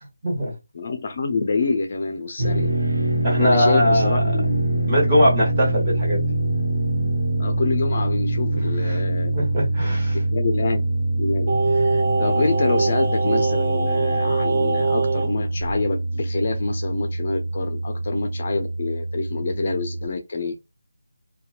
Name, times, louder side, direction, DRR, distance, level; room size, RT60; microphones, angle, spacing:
voice 1, 0.7-2.7 3.4-4.8 7.4-9.3 9.9-10.0 10.3-10.8 11.1-20.5, left 3 dB, 40° left, 0.4 m, -26 dB
sound 1, 2.4-20.0, right 1 dB, 70° right, 0.9 m, -24 dB
voice 2, 3.2-4.3 4.9-6.3 8.8-9.0 9.3-10.2, equal, 20° right, 1.5 m, -21 dB
Singing, 11.5-15.3 15.6-15.7, right 4 dB, 50° right, 1.2 m, -23 dB
2.7 x 2.2 x 2.3 m
figure-of-eight pair, 165°, 0 cm